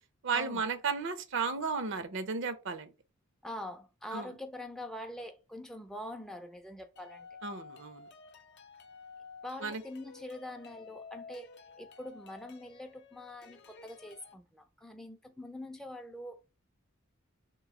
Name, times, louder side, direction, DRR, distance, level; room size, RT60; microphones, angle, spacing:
voice 1, 0.2-2.9 4.1-4.3 7.4-8.1 9.6-9.8, right 5 dB, 60° right, 0.6 m, -34 dB
voice 2, 3.4-7.3 9.4-11.5 11.8-16.5, left 1 dB, 5° left, 0.4 m, -44 dB
sound 1, 7.0-14.3, left 5 dB, 55° left, 0.6 m, -52 dB
3.3 x 3.0 x 4.7 m
head